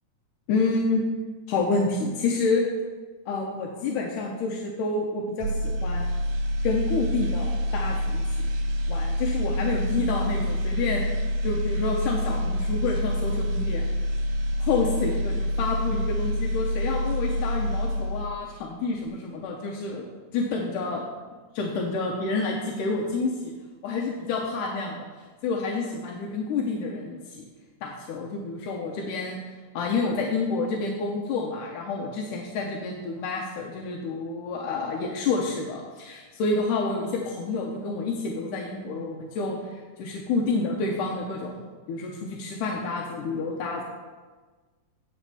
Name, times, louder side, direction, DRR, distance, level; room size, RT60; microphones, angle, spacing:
voice 1, 0.5-1.0 1.5-2.7 3.3-6.1 6.6-8.5 8.9-11.0 11.4-13.8 14.6-20.1 20.3-21.1 21.6-23.5 23.8-25.1 25.4-27.4 27.8-43.8, left 3 dB, 90° left, -1 dB, 2.4 m, -29 dB
sound 1, 5.4-18.5 18.9-19.1, equal, 70° right, 1.7 m, -27 dB
9.3 x 4.3 x 6.8 m, 1.4 s
omnidirectional pair, 3.6 m